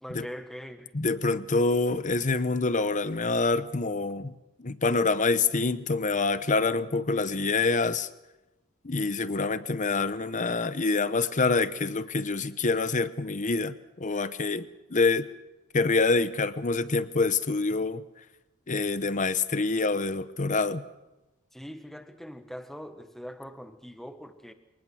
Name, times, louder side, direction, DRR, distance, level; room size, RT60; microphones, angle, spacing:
voice 1, 0.0-0.9 21.5-24.5, equal, ahead, 8 dB, 1.3 m, -42 dB
voice 2, 0.9-4.3 4.6-8.1 8.8-15.3 15.7-18.0 18.7-20.8, left 3 dB, 35° left, 14 dB, 0.8 m, -26 dB
23.0 x 19.5 x 6.3 m, 1.0 s
head